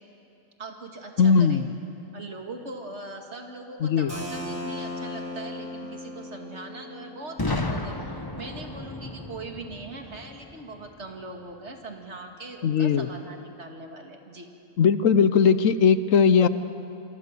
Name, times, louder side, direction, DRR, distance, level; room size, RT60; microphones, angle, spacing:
voice 1, 0.6-1.6 2.1-14.5, right 2 dB, 55° right, 2 dB, 2.5 m, -41 dB
voice 2, 1.2-1.6 3.8-4.1 12.6-13.1 14.8-16.5, left 6 dB, 70° left, 13 dB, 1.1 m, -19 dB
Keyboard (musical), 4.1-9.6, left 1 dB, 10° right, 5.1 m, -38 dB
Boom, 7.4-11.2, left 2 dB, 20° left, 1.1 m, -33 dB
27.0 x 23.5 x 6.8 m, 2.8 s
omnidirectional pair, 1.4 m